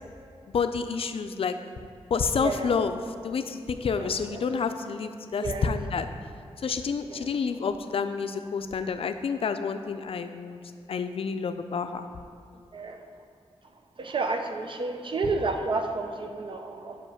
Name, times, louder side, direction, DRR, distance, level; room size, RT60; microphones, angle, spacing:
voice 1, 0.5-1.6 2.1-2.9 3.2-6.1 6.6-10.6 10.9-12.1, left 5 dB, 60° left, 8 dB, 0.4 m, -29 dB
voice 2, 2.4-2.7 3.9-4.4 5.4-5.7 7.1-7.3 12.7-13.0 14.0-17.1, right 3 dB, 50° right, 5 dB, 0.6 m, -31 dB
5.4 x 5.1 x 6.2 m, 2.5 s
wide cardioid pair, 150°, 11 cm